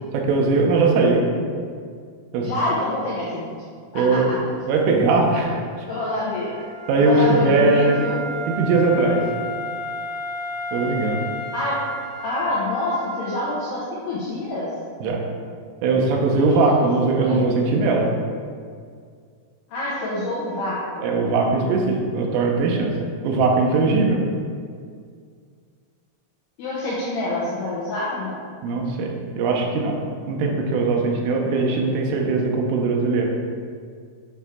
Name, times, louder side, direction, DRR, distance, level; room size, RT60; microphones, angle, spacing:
voice 1, 0.1-1.2 2.3-2.5 3.9-4.3 4.7-5.6 6.9-7.9 8.6-9.2 10.7-11.2 15.0-15.2 15.8-18.1 21.0-22.9 23.2-24.2 28.6-30.0 30.3-33.3, right 3 dB, 85° right, 1 dB, 3.3 m, -20 dB
voice 2, 2.4-3.5 3.9-4.4 5.3-5.4 5.9-6.5 6.9-8.2 11.5-11.8 12.2-14.7 16.3-16.9 17.1-17.4 19.7-21.0 26.6-28.4, left 1 dB, 85° left, -7 dB, 2.3 m, -27 dB
Wind instrument woodwind instrument, 5.8-13.6, equal, 70° right, 1.9 m, -33 dB
9.2 x 3.6 x 4.3 m, 2.1 s
omnidirectional pair, 5.9 m